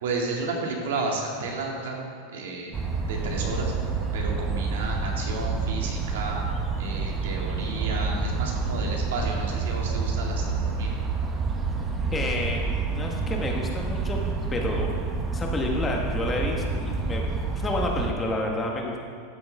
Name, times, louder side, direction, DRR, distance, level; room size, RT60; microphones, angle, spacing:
voice 1, 0.0-2.7 3.1-3.7 4.1-6.4 6.8-10.9, right 3 dB, 85° right, 0 dB, 2.0 m, -32 dB
sound 1, 2.7-18.1, right 4 dB, 20° right, 0.7 m, -28 dB
voice 2, 12.1-14.2 14.5-14.9 15.3-17.3 17.6-19.0, left 2 dB, 15° left, 0 dB, 1.1 m, -29 dB
12.5 x 7.6 x 3.4 m, 2.2 s
supercardioid pair, 155°, 0 cm